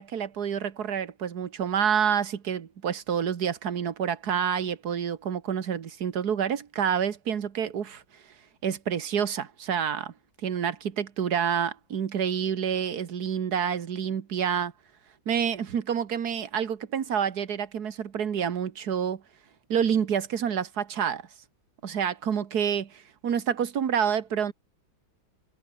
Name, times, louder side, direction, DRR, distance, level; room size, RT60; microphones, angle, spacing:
voice 1, 0.0-8.0 8.6-10.1 10.4-14.7 15.3-19.2 19.7-21.2 21.8-24.5, right 8 dB, 50° right, 1.8 m, -28 dB
omnidirectional pair, 2.2 m